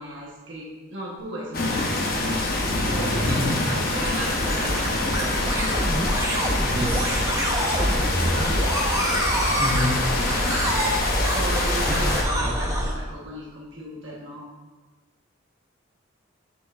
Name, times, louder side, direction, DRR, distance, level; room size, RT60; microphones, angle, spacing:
voice 1, 0.0-2.4 2.9-5.7 7.6-8.7 11.3-14.5, right 1 dB, 60° right, -4 dB, 1.3 m, -36 dB
sound 1, 1.5-12.2, left 2 dB, 45° left, 0.9 m, -26 dB
sound 2, 3.4-12.9, equal, 15° right, 0.7 m, -26 dB
voice 2, 6.7-7.2 9.6-10.0 11.9-12.0 12.4-12.6, left 1 dB, 30° right, -6 dB, 1.5 m, -27 dB
7.8 x 6.5 x 2.5 m, 1.3 s
head